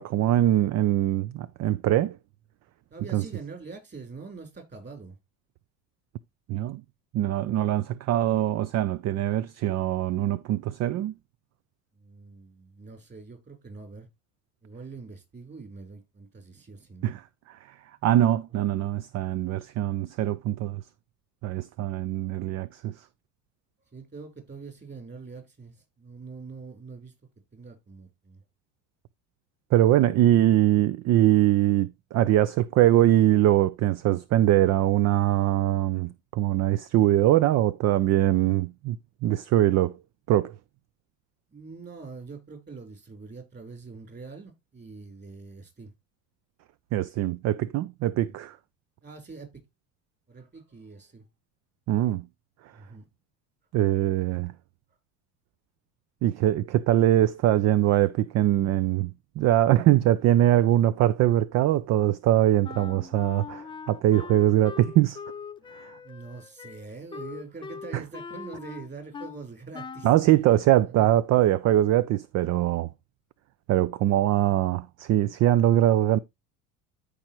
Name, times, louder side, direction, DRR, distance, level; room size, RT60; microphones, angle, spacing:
voice 1, 0.0-2.2 3.1-3.2 6.5-6.8 7.1-11.1 17.0-17.2 17.5-17.6 18.0-20.8 21.4-23.0 29.7-39.0 39.2-40.0 40.3-40.5 46.9-48.6 51.9-52.2 53.7-54.5 56.2-65.2 65.8-65.9 67.9-68.0 70.0-72.9 73.7-76.2, right 13 dB, 45° right, 0.5 m, -22 dB
voice 2, 2.9-5.2 11.9-14.1 14.6-17.1 23.9-27.1 27.5-28.4 30.1-30.3 41.5-45.9 48.2-48.4 49.0-49.6 50.3-51.3 52.7-53.1 66.0-70.2 70.8-71.1, right 4 dB, 25° right, 4.0 m, -44 dB
Wind instrument woodwind instrument, 62.6-69.4 69.7-70.2, left 5 dB, 15° left, 0.4 m, -41 dB
13.5 x 4.9 x 3.0 m
supercardioid pair, 95°, 39 cm